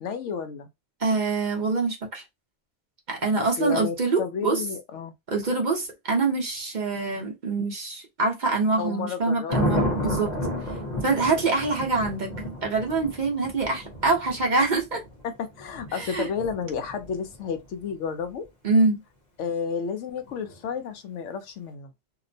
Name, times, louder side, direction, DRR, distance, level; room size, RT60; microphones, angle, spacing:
voice 1, 0.0-0.7 3.4-5.1 8.8-10.2 15.2-18.4 19.4-21.9, left 6 dB, 85° left, 0.9 m, -32 dB
voice 2, 1.0-2.2 3.1-4.6 5.3-10.3 11.0-12.3 12.6-15.0 15.9-16.3 18.6-19.0, right 3 dB, 45° right, 0.7 m, -25 dB
Thunder, 9.5-17.6 20.3-20.6, left 1 dB, 40° left, 0.9 m, -32 dB
2.8 x 2.1 x 2.6 m
omnidirectional pair, 1.2 m